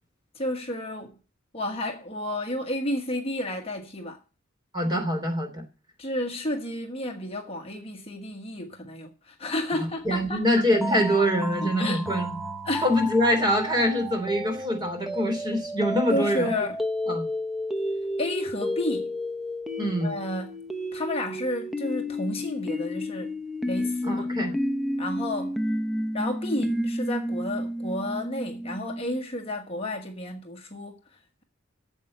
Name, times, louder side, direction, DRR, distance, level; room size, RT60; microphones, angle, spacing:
voice 1, 0.3-1.1 1.5-4.2 6.0-10.4 11.6-12.0 12.6-12.9 16.1-16.8 18.2-19.1 20.0-20.6 20.9-23.4 23.6-24.5 25.0-25.6 26.1-31.0, left 1 dB, 30° left, 1.3 m, -31 dB
voice 2, 4.7-5.6 9.8-12.4 12.8-16.5 17.1-17.3 19.8-20.1 24.1-24.6, equal, 20° right, 3.2 m, -24 dB
sound 1, 10.7-29.2, equal, ahead, 0.7 m, -31 dB
8.6 x 7.7 x 8.7 m
head